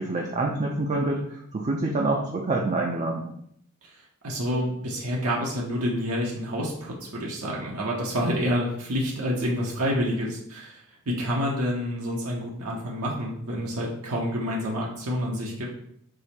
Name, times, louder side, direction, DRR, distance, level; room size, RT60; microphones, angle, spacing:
voice 1, 0.0-3.3, right 2 dB, 35° right, 0 dB, 0.4 m, -26 dB
voice 2, 4.2-15.7, equal, 80° right, -3 dB, 0.8 m, -28 dB
4.8 x 2.0 x 4.3 m, 0.69 s
head